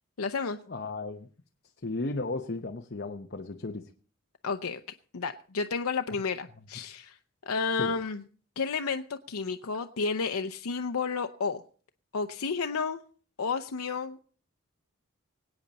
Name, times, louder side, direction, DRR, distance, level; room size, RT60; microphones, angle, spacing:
voice 1, 0.2-0.6 4.4-4.8 5.1-7.2 7.5-8.2 8.6-11.6 12.1-13.0 13.4-14.2, left 5 dB, 90° left, 7 dB, 0.7 m, -31 dB
voice 2, 0.7-1.3 1.8-3.9 7.8-7.9, left 3 dB, 50° left, 4 dB, 0.8 m, -34 dB
25.0 x 8.9 x 4.1 m, 0.43 s
head